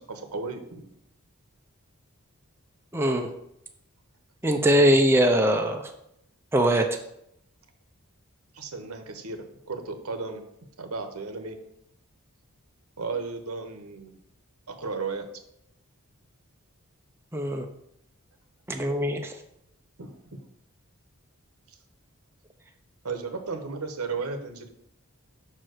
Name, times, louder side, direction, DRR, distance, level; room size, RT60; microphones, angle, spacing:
voice 1, 0.1-0.9 8.5-10.4 10.8-11.6 13.0-14.2 14.7-15.2 20.0-20.4 23.0-24.7, right 4 dB, 75° right, 7 dB, 1.0 m, -34 dB
voice 2, 2.9-3.3 4.4-5.9 6.5-6.9 17.3-17.7 18.7-19.4, equal, 10° right, 3 dB, 0.5 m, -22 dB
5.6 x 4.5 x 6.4 m, 0.78 s
head